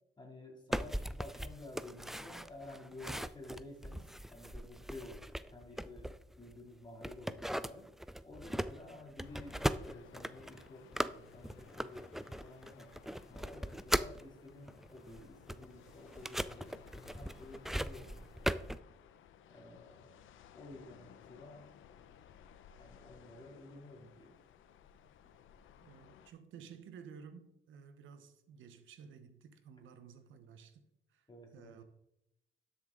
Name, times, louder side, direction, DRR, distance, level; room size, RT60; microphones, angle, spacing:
voice 1, 0.2-7.9 8.2-12.9 13.3-18.6 19.5-20.2 20.5-21.7 22.8-24.3 31.3-31.8, left 2 dB, 20° left, 3.2 m, -52 dB
sound 1, 0.7-6.6 7.0-14.2 14.7-18.8, equal, ahead, 0.4 m, -39 dB
sound 2, 9.2-26.3, left 8 dB, 80° left, 0.8 m, -59 dB
voice 2, 25.8-30.8 31.1-31.3 31.5-31.8, right 6 dB, 80° right, 1.3 m, -54 dB
12.0 x 7.1 x 3.9 m
cardioid pair, 90°, 20 cm